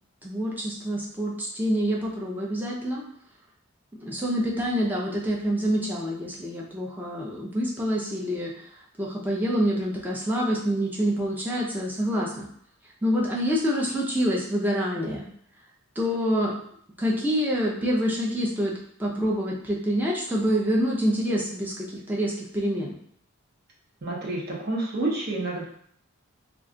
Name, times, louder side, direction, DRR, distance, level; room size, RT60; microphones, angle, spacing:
voice 1, 0.2-3.0 4.0-8.6 9.0-12.5 13.0-15.3 16.0-16.5 17.0-18.7 19.0-23.0, equal, 10° right, -4 dB, 0.5 m, -26 dB
voice 2, 24.0-25.6, right 2 dB, 45° right, -3 dB, 0.8 m, -29 dB
2.4 x 2.3 x 3.7 m, 0.63 s
head